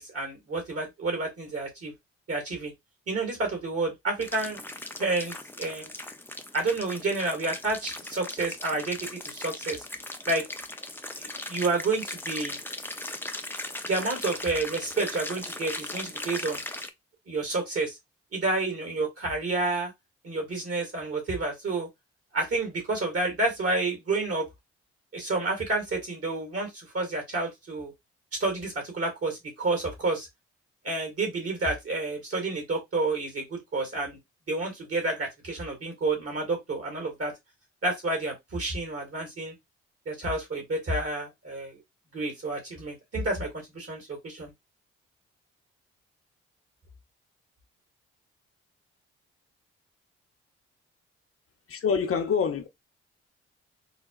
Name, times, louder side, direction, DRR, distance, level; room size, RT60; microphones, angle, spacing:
voice 1, 0.0-1.9 2.3-2.7 3.1-4.6 5.0-5.9 6.5-9.8 10.3-10.5 11.2-12.6 13.8-16.6 17.3-18.0 18.3-19.9 20.2-21.9 22.3-24.5 25.1-27.9 28.4-30.3 30.8-34.2 34.5-37.3 37.8-39.5 40.1-41.8 42.1-44.5, right 2 dB, 50° right, 2.1 m, -30 dB
sound 1, 4.2-16.9, left 2 dB, 5° left, 0.6 m, -38 dB
voice 2, 51.7-52.7, left 6 dB, 45° left, 0.8 m, -26 dB
3.9 x 2.2 x 2.4 m
hypercardioid pair, 45°, 30 cm